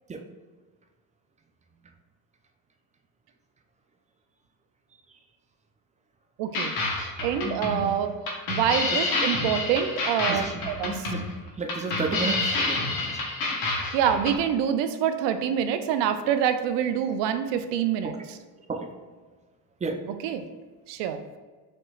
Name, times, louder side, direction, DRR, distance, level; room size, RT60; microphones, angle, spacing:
voice 1, 6.4-6.7 7.2-8.2 8.5-11.1 13.9-18.4 20.2-20.4 20.9-21.2, right 9 dB, 70° right, 9 dB, 0.5 m, -26 dB
sound 1, 6.5-14.4, left 2 dB, 55° left, 1.2 m, -28 dB
voice 2, 10.3-10.6 11.1-11.2 11.6-12.8 18.7-18.9 19.8-20.0, right 4 dB, 15° right, 5 dB, 0.4 m, -30 dB
5.4 x 2.9 x 2.4 m, 1.4 s
supercardioid pair, 75°, 45 cm